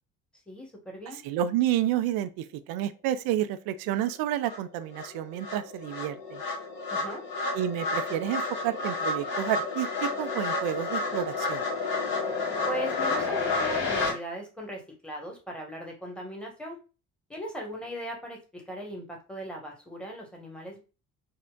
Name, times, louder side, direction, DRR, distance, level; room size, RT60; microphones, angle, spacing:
voice 1, 0.5-1.2 6.9-7.2 12.7-16.8 17.3-20.8, equal, ahead, 1.3 m, -39 dB
voice 2, 1.2-6.4 7.5-9.9 10.2-11.6, right 12 dB, 55° right, 0.5 m, -30 dB
sound 1, 4.0-4.1 4.5-14.1, left 3 dB, 65° left, 1.3 m, -30 dB
4.4 x 2.1 x 2.3 m
figure-of-eight pair, 50°, 46 cm